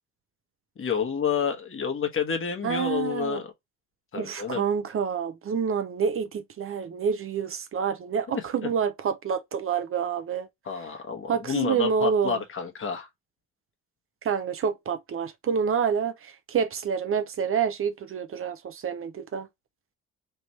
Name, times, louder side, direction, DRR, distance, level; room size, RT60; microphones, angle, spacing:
voice 1, 0.8-3.5 4.1-4.6 8.3-8.4 10.6-13.1, left 6 dB, 45° left, 1.3 m, -29 dB
voice 2, 2.6-3.4 4.1-10.5 11.3-12.4 14.2-19.5, right 7 dB, 45° right, 0.6 m, -28 dB
3.4 x 3.0 x 4.1 m
cardioid pair, 90°, 30 cm